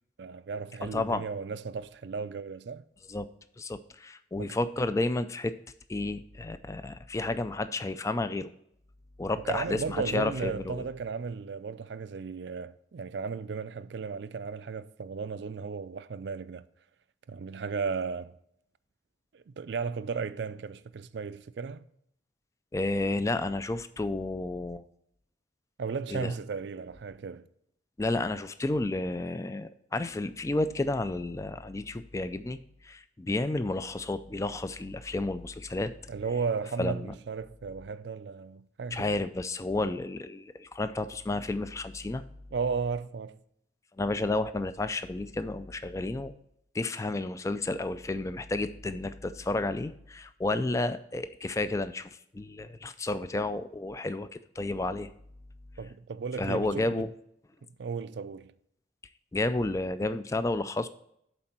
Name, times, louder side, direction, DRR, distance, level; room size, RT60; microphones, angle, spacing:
voice 1, 0.2-2.8 4.4-4.6 9.4-16.6 17.3-18.4 19.3-21.8 25.8-27.5 36.1-39.1 42.5-43.4 55.8-57.0 57.8-58.5, right 5 dB, 65° right, 0.4 m, -35 dB
voice 2, 0.8-1.2 3.1-3.3 3.6-5.5 5.9-8.5 9.2-10.9 22.7-24.8 26.1-26.3 28.0-32.6 32.8-35.9 36.8-37.1 38.9-42.2 44.0-46.3 46.7-54.3 54.6-55.1 56.4-57.1 59.3-60.9, left 2 dB, 15° left, 0.3 m, -31 dB
11.0 x 4.4 x 4.4 m
head